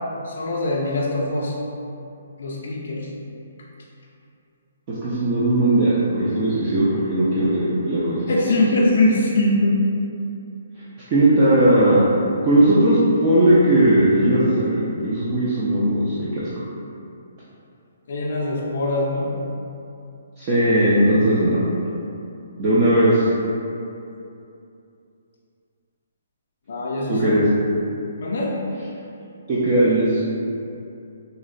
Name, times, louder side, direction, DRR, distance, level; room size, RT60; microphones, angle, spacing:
voice 1, 0.2-1.6 2.4-3.1 8.3-9.8 18.1-19.3 26.7-27.3 28.2-28.5, left 2 dB, 55° left, -4 dB, 0.3 m, -22 dB
voice 2, 5.0-8.3 11.1-12.0 12.4-16.5 20.4-21.6 22.6-23.3 27.1-27.4 29.5-30.2, right 1 dB, 25° right, -9 dB, 0.3 m, -18 dB
3.8 x 2.1 x 2.5 m, 2.7 s
hypercardioid pair, 175°, 0 cm